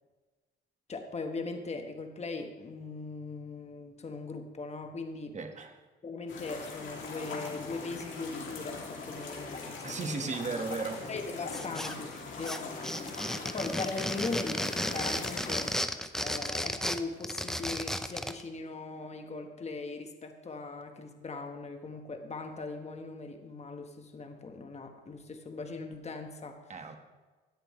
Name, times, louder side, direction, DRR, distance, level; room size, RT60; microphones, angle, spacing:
voice 1, 0.9-5.4 6.0-10.3 11.1-13.0 13.3-15.7 16.2-26.6, left 3 dB, 35° left, 5 dB, 1.4 m, -40 dB
voice 2, 5.3-5.8 9.8-11.0 26.7-27.0, right 4 dB, 35° right, 5 dB, 1.6 m, -35 dB
sound 1, 6.3-15.7, left 4 dB, 75° left, 2.9 m, -41 dB
sound 2, 11.5-12.2 12.4-18.4, equal, ahead, 0.7 m, -33 dB
17.0 x 10.5 x 3.3 m, 1.3 s
cardioid pair, 90°, 20 cm